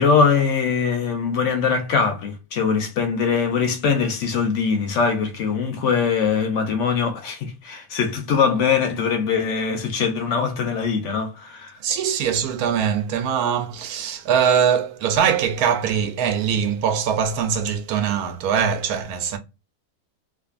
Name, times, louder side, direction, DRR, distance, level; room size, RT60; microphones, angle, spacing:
voice 1, 0.0-11.8, left 5 dB, 65° left, 0.8 m, -22 dB
voice 2, 11.8-19.4, right 8 dB, 85° right, 1.1 m, -22 dB
2.5 x 2.4 x 2.3 m
omnidirectional pair, 1.6 m